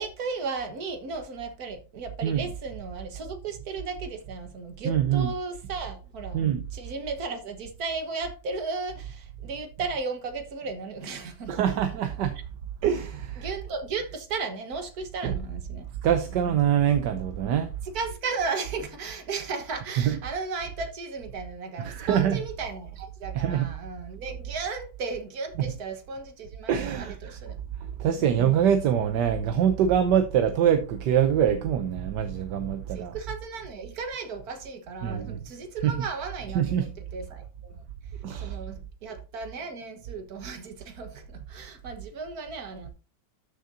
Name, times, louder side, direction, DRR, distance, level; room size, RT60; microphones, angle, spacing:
voice 1, 0.0-6.4 6.7-11.8 13.4-15.9 17.9-27.6 32.9-37.8 38.4-42.9, right 4 dB, 60° right, 1.9 m, -35 dB
voice 2, 4.8-5.3 6.3-6.6 11.5-12.4 12.8-13.5 15.2-15.3 16.0-17.7 20.0-20.2 21.8-22.4 23.3-23.7 25.6-25.7 26.7-27.4 28.0-33.1 35.0-35.4 35.8-36.0 36.5-36.9 38.2-38.5, right 9 dB, 80° right, 1.4 m, -24 dB
13.0 x 6.6 x 2.7 m
omnidirectional pair, 1.9 m